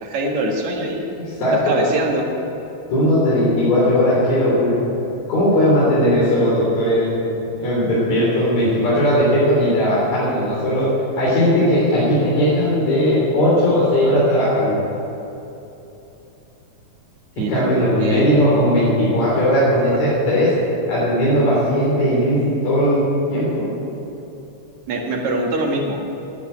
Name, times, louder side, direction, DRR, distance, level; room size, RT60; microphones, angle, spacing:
voice 1, 0.0-1.0 1.6-2.3 17.4-18.3 24.9-26.0, right 2 dB, 75° right, 1 dB, 3.0 m, -23 dB
voice 2, 1.4-1.7 2.9-4.8 5.3-7.3 7.6-10.9 11.2-14.8 17.4-20.5 20.9-23.7, equal, 70° left, -8 dB, 4.8 m, -18 dB
11.5 x 11.0 x 9.0 m, 2.9 s
omnidirectional pair, 3.3 m